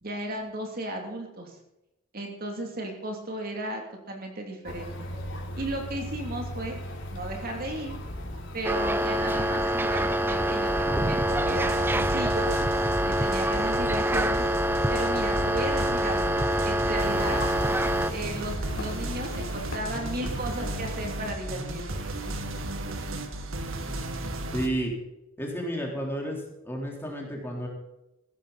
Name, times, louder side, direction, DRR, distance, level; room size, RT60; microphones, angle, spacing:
voice 1, 0.0-1.6 2.1-3.8 4.1-4.9 5.5-6.8 7.1-7.9 8.5-12.5 13.1-14.5 14.9-16.4 16.6-17.4 18.1-22.0, right 1 dB, 45° right, 2 dB, 2.8 m, -35 dB
sound 1, 4.6-20.9, left 1 dB, 65° left, 3.5 m, -37 dB
sound 2, 8.6-18.1, right 1 dB, 10° right, 0.6 m, -26 dB
sound 3, 11.3-24.7, right 1 dB, 80° right, 1.8 m, -35 dB
voice 2, 24.5-24.9 25.4-27.7, right 1 dB, 10° left, -1 dB, 3.7 m, -31 dB
15.5 x 13.5 x 4.1 m, 0.92 s
head